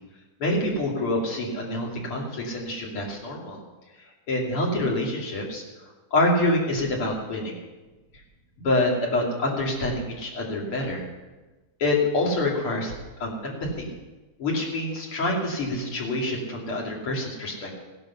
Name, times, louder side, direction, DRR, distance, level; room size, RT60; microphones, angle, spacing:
voice 1, 0.4-3.6 4.3-5.6 6.1-7.6 8.6-11.1 11.8-12.9 13.2-13.9 14.4-17.7, left 1 dB, 80° left, -2 dB, 3.6 m, -26 dB
16.0 x 12.0 x 5.6 m, 1.2 s
omnidirectional pair, 2.4 m